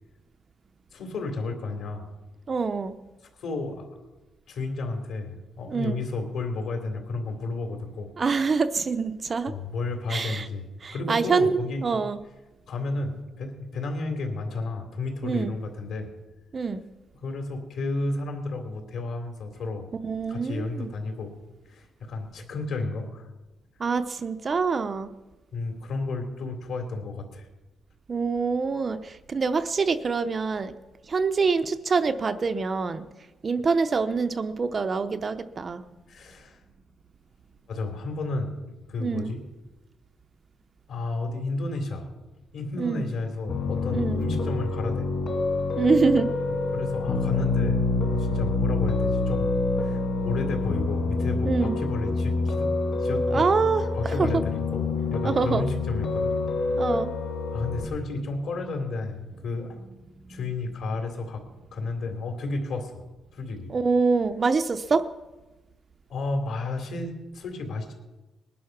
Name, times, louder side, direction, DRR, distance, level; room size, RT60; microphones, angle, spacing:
voice 1, 0.9-2.1 3.4-3.9 4.5-8.1 9.5-11.9 12.7-16.1 17.2-19.9 20.3-21.3 21.7-23.2 25.5-27.5 36.1-36.6 37.7-38.5 38.9-39.4 40.9-42.1 42.5-45.1 46.7-47.8 48.1-49.5 49.8-52.7 53.0-53.4 53.7-56.3 57.5-59.8 60.3-61.4 61.7-63.0 63.3-63.7 66.1-67.9, left 3 dB, 55° left, 4 dB, 3.3 m, -32 dB
voice 2, 2.5-3.0 5.7-6.0 8.2-9.5 10.1-10.5 10.8-12.2 15.2-15.5 16.5-16.8 20.0-20.9 23.8-25.1 28.1-30.7 31.1-33.0 33.4-35.8 39.0-39.3 42.8-43.1 43.9-44.2 45.8-46.3 51.4-51.8 53.3-54.3 55.2-55.6 56.8-57.1 63.7-65.1, right 4 dB, 25° right, 9 dB, 0.6 m, -25 dB
Piano, 43.5-57.8, left 3 dB, 40° left, 2.4 m, -26 dB
20.5 x 11.5 x 5.9 m, 1.1 s
cardioid pair, 180°, 0 cm